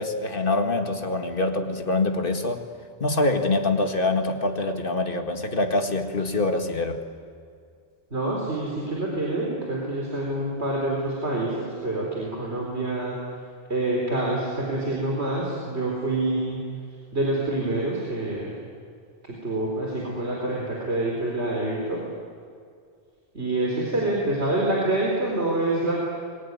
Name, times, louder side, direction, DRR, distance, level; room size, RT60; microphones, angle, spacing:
voice 1, 0.0-2.6 3.0-7.0, left 2 dB, 55° left, 5 dB, 2.1 m, -25 dB
voice 2, 8.1-13.2 13.7-16.6 17.1-18.5 19.2-22.0 23.3-25.9, right 2 dB, 75° right, -2 dB, 4.4 m, -26 dB
26.5 x 22.5 x 9.6 m, 2.2 s
omnidirectional pair, 1.1 m